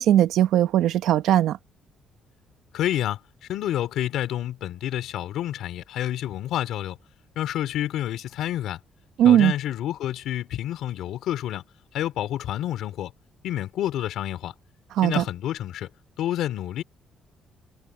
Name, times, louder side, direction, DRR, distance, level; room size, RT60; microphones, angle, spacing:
voice 1, 0.0-1.6 9.2-9.5 15.0-15.2, right 11 dB, 80° right, 1.0 m, -19 dB
voice 2, 2.7-3.2 3.5-7.0 7.4-8.8 9.2-11.6 11.9-13.1 13.4-14.5 15.0-15.9 16.2-16.8, left 12 dB, 75° left, 3.7 m, -29 dB
cardioid pair, 160°, 0 cm